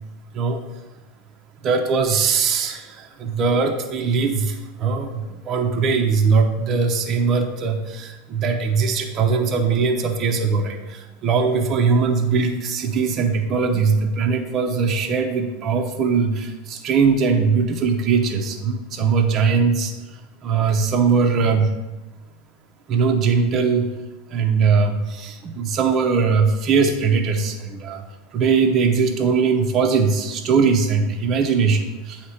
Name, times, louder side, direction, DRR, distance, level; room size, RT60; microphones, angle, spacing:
voice 1, 1.6-19.9 20.4-21.7 22.9-23.9 24.3-28.0 28.3-32.2, right 5 dB, 35° right, 2 dB, 0.7 m, -20 dB
8.1 x 2.9 x 5.7 m, 1.1 s
supercardioid pair, 140°, 0 cm